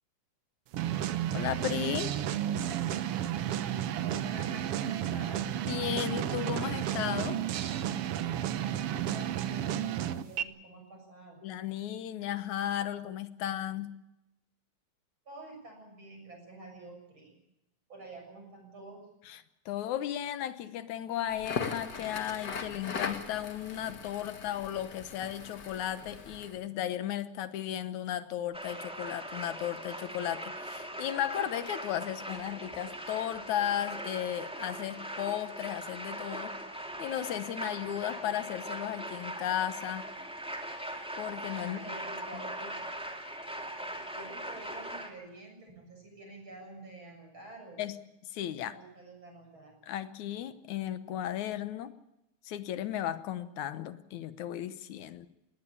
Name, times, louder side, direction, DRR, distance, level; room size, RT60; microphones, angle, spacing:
sound 1, 0.7-10.4, right 11 dB, 65° right, 1.6 m, -32 dB
voice 1, 1.3-2.1 5.7-7.4 11.4-13.9 19.3-36.5 37.0-40.1 41.2-41.8 42.3-42.4 47.8-48.0 48.2-48.8 49.9-51.9 52.4-55.3, left 11 dB, 75° left, 13 dB, 2.4 m, -35 dB
voice 2, 4.0-5.5 9.0-11.4 15.3-17.4 17.9-19.0 41.6-42.9 43.9-47.8 48.6-49.7, right 2 dB, 40° right, 2 dB, 7.6 m, -48 dB
Crackle, 21.3-26.6, left 5 dB, 40° left, 2.0 m, -39 dB
sound 2, 28.5-45.1, right 1 dB, ahead, 2.3 m, -40 dB
20.0 x 18.5 x 8.6 m, 0.88 s
omnidirectional pair, 3.5 m